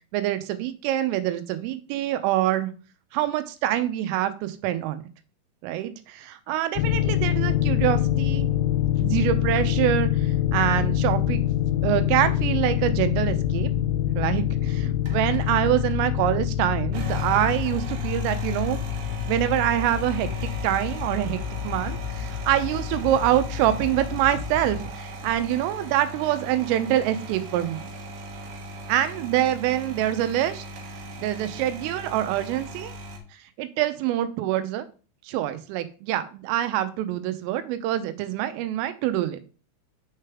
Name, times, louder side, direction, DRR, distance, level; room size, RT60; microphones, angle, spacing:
voice 1, 0.1-2.7 3.1-5.0 5.6-8.5 9.0-11.4 11.8-13.7 14.2-18.8 19.3-20.3 20.6-21.4 21.7-27.9 28.9-30.7 31.2-32.9 33.6-34.9 35.3-39.4, right 12 dB, 90° right, 11 dB, 3.4 m, -25 dB
sound 1, 6.8-24.9, left 11 dB, 85° left, 2.8 m, -26 dB
sound 2, 15.0-16.1 16.8-33.2, right 1 dB, 70° right, 2.7 m, -39 dB
6.7 x 6.6 x 3.5 m, 0.36 s
omnidirectional pair, 5.7 m